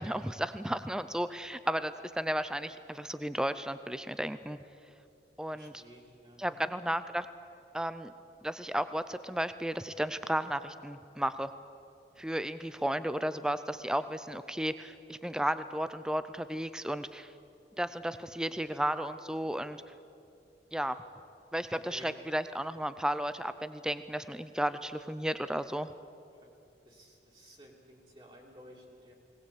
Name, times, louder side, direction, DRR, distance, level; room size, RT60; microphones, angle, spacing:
voice 1, 0.0-4.6 5.4-5.8 6.4-7.3 7.7-8.1 8.4-11.5 12.2-17.3 17.8-19.8 20.7-21.0 21.5-25.9, right 1 dB, 5° right, 12 dB, 0.5 m, -33 dB
voice 2, 5.5-6.7 21.9-22.1 26.9-29.1, equal, 30° right, -3 dB, 2.6 m, -54 dB
20.5 x 19.0 x 8.4 m, 2.6 s
head